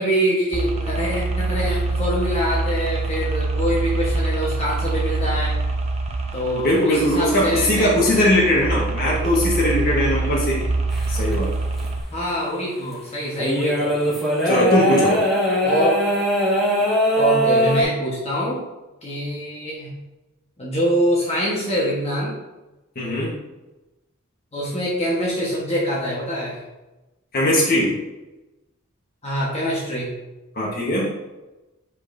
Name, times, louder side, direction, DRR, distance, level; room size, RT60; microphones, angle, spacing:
voice 1, 0.0-5.6 6.3-8.3 12.1-13.9 15.6-15.9 17.2-18.6 19.0-19.9 20.6-22.3 24.5-26.6 29.2-30.1, equal, 30° left, -6 dB, 1.3 m, -24 dB
sound 1, 0.5-12.0, right 3 dB, 30° right, 0.7 m, -25 dB
voice 2, 6.5-10.7 11.1-11.6 14.4-15.2 22.9-23.3 27.3-27.9 30.5-31.1, left 1 dB, 45° left, -5 dB, 1.3 m, -20 dB
sound 2, 10.9-11.3 11.8-11.9 12.9-13.0 13.4-17.8, equal, ahead, 1.7 m, -20 dB
8.3 x 5.1 x 2.7 m, 1.1 s
head